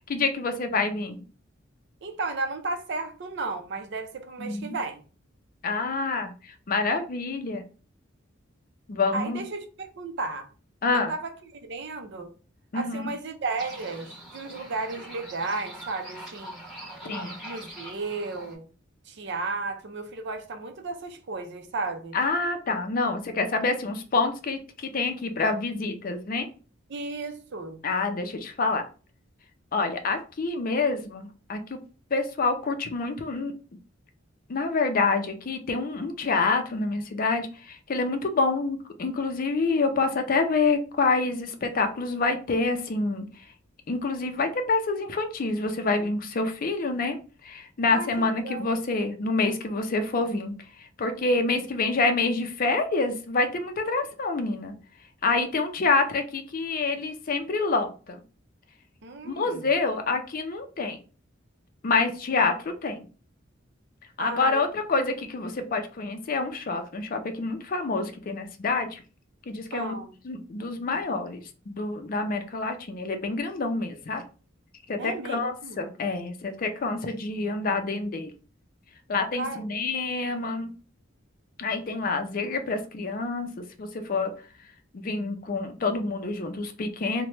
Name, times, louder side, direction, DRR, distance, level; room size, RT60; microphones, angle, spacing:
voice 1, 0.1-1.2 4.4-4.7 5.6-7.6 8.9-9.4 10.8-11.1 12.7-13.1 17.0-17.3 22.1-26.5 27.8-28.9 29.7-31.8 32.1-33.5 34.5-43.3 43.9-47.2 47.4-54.7 55.2-58.2 59.2-61.0 61.8-63.1 64.2-69.0 69.5-69.9 70.2-74.2 74.9-78.3 79.1-80.7 81.6-84.3 84.9-87.3, left 3 dB, 45° left, 0.4 m, -27 dB
voice 2, 2.0-5.0 9.1-10.5 10.9-12.3 12.7-16.5 17.0-18.7 19.1-22.2 26.9-27.8 47.9-48.7 51.5-51.6 59.0-59.7 64.2-64.6 69.7-70.1 75.0-75.9 79.3-79.8, right 3 dB, 60° right, 0.5 m, -34 dB
sound 1, 13.6-18.5, right 1 dB, ahead, 1.3 m, -42 dB
2.9 x 2.1 x 3.1 m
head